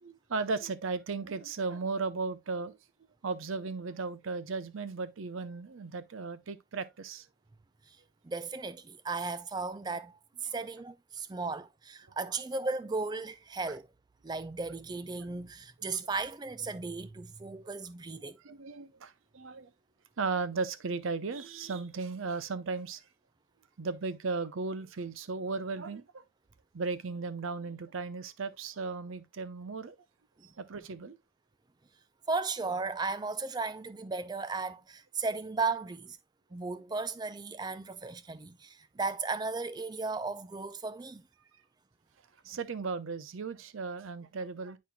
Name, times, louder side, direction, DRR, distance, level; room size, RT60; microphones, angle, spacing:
voice 1, 0.0-2.8 3.2-7.3 10.5-10.6 12.1-12.2 17.6-17.7 18.4-19.7 20.2-23.0 23.8-26.2 26.7-30.0 30.6-31.2 42.4-44.8, right 4 dB, 80° right, 0.6 m, -36 dB
voice 2, 8.2-13.9 14.2-18.4 32.3-36.2 36.5-41.2, right 3 dB, 20° right, 0.3 m, -35 dB
10.0 x 4.2 x 2.2 m
head